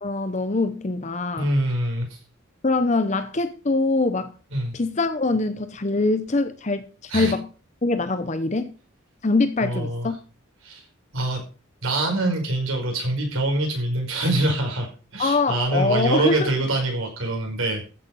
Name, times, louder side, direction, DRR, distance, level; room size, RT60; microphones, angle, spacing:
voice 1, 0.0-1.5 2.6-4.3 4.7-7.5 7.8-8.7 9.2-10.2 15.2-16.5, left 3 dB, 35° left, 0.8 m, -23 dB
voice 2, 1.4-2.2 4.5-4.8 7.1-7.3 9.6-10.1 10.6-10.8 11.1-11.4 11.8-14.9 15.1-17.8, right 1 dB, 80° right, 5.2 m, -24 dB
14.5 x 6.7 x 5.4 m
head